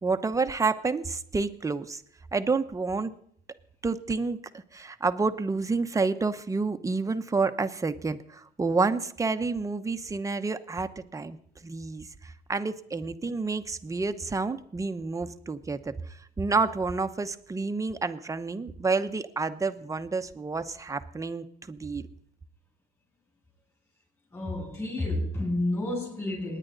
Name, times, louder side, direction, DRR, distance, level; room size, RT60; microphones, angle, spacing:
voice 1, 0.0-2.0 2.3-3.1 3.8-4.4 4.7-22.0, right 4 dB, 20° right, 0.9 m, -29 dB
voice 2, 24.3-26.6, left 1 dB, 20° left, 7.7 m, -30 dB
27.0 x 10.0 x 4.0 m
cardioid pair, 110°, 17 cm